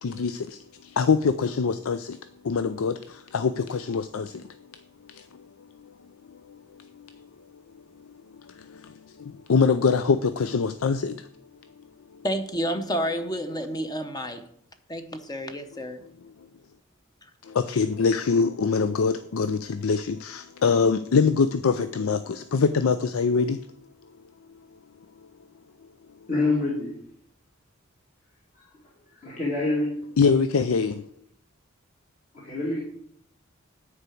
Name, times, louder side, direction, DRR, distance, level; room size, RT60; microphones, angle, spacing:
voice 1, 0.0-2.2 2.4-4.5 5.1-5.5 5.8-5.9 6.3-7.3 8.6-11.3 15.7-15.9 17.4-23.6 24.5-24.6 30.2-31.1, left 5 dB, 90° left, 0.5 m, -24 dB
voice 2, 12.2-14.4 14.9-16.0, equal, 20° left, 0.8 m, -30 dB
voice 3, 26.3-26.9 28.5-28.7 29.1-29.9 32.3-32.8, left 2 dB, 40° left, 2.4 m, -26 dB
9.6 x 4.7 x 7.8 m
head